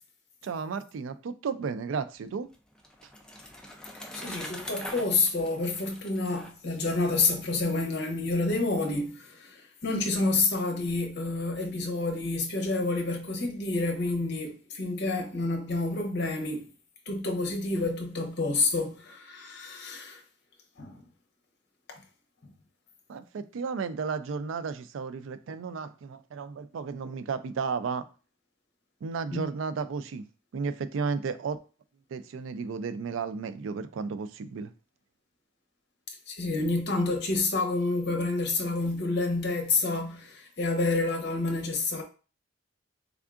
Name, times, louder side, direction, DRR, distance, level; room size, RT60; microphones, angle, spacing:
voice 1, 0.4-2.5 23.1-28.0 29.0-30.3 30.5-31.6 32.1-34.7, right 5 dB, 80° right, 0.4 m, -33 dB
Bicycle, 2.2-7.3, left 1 dB, 5° left, 0.4 m, -43 dB
voice 2, 4.1-16.7 17.1-20.2 20.8-21.0 21.9-22.0 29.3-29.5 36.3-42.0, left 3 dB, 60° left, 0.9 m, -29 dB
3.5 x 3.5 x 2.4 m
head